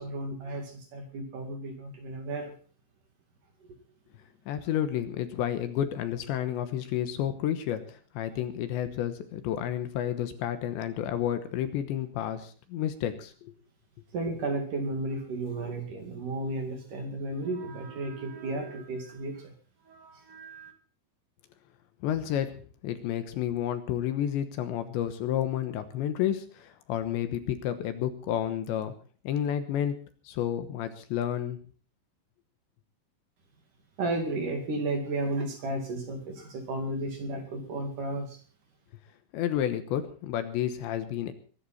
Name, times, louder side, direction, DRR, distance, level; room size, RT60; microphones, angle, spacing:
voice 1, 0.0-2.5 14.1-19.5 19.8-20.7 34.0-38.4, right 2 dB, 50° right, 5 dB, 3.3 m, -33 dB
voice 2, 4.5-13.5 22.0-22.6 22.8-28.9 29.2-30.0 30.2-31.6 39.3-41.3, left 10 dB, 75° left, 10 dB, 3.2 m, -30 dB
22.5 x 11.5 x 4.2 m, 0.42 s
omnidirectional pair, 5.7 m